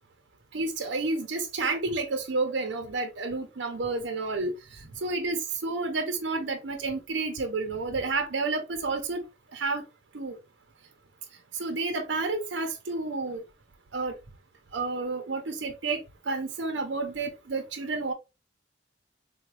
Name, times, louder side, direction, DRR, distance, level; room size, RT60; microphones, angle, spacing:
voice 1, 0.5-4.5 5.0-9.2 9.5-9.8 10.1-10.4 11.6-13.4 13.9-14.1 14.7-16.0 16.3-18.1, right 3 dB, 80° right, 0.7 m, -30 dB
3.8 x 2.2 x 3.0 m
head